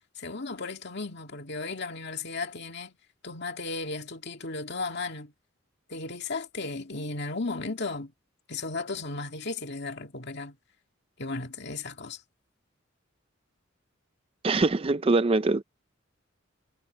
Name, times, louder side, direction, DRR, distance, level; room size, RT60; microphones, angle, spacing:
voice 1, 0.2-3.0 3.2-5.3 5.9-8.1 8.5-10.6 11.2-12.2, left 3 dB, 55° left, 2.2 m, -35 dB
voice 2, 14.4-15.6, right 3 dB, 25° right, 0.4 m, -23 dB
head